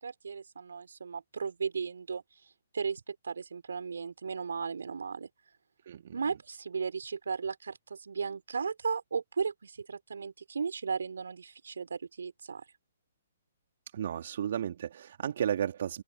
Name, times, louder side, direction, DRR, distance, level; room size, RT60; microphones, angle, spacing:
voice 1, 0.0-2.2 2.7-5.3 6.1-12.6, right 5 dB, 75° right, 4.3 m, -35 dB
voice 2, 5.9-6.2 13.9-16.0, right 9 dB, 55° right, 2.7 m, -33 dB
open air
figure-of-eight pair, 130°, 0 cm